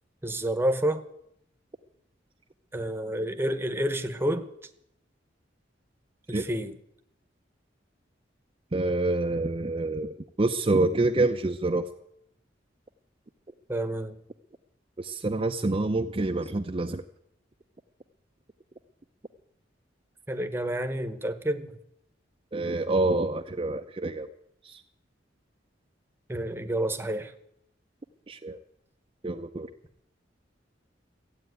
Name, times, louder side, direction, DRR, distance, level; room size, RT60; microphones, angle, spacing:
voice 1, 0.2-1.0 2.7-4.5 6.3-6.8 13.7-14.2 20.3-21.8 26.3-27.3, right 1 dB, 10° right, 8 dB, 0.9 m, -29 dB
voice 2, 8.7-11.9 15.0-17.0 22.5-24.3 24.6-24.8 28.3-28.6 29.2-29.7, right 2 dB, 30° right, 4 dB, 0.6 m, -27 dB
15.0 x 8.8 x 9.2 m, 0.77 s
head